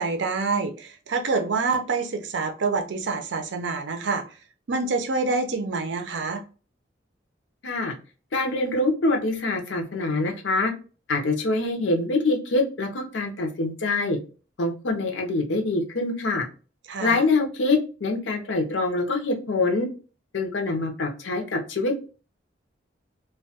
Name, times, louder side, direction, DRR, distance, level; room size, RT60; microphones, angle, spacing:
voice 1, 0.0-4.2 4.7-6.4 16.9-17.2, right 4 dB, 70° right, 0.5 m, -26 dB
voice 2, 7.6-7.9 8.3-10.7 11.1-14.2 14.6-16.5 17.0-19.9 20.3-22.0, left 2 dB, 80° left, 0.6 m, -25 dB
2.2 x 2.2 x 2.7 m
head